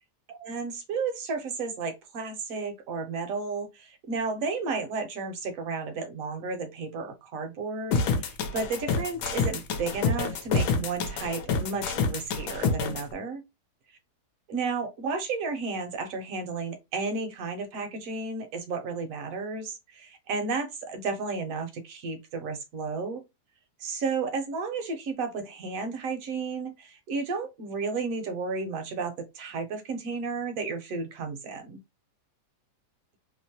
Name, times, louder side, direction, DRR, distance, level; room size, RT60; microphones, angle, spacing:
voice 1, 0.3-13.4 14.5-23.2 23.8-31.8, right 4 dB, 65° right, 0.9 m, -33 dB
sound 1, 7.9-13.0, left 4 dB, 75° left, 1.1 m, -27 dB
3.0 x 2.0 x 2.7 m
omnidirectional pair, 1.8 m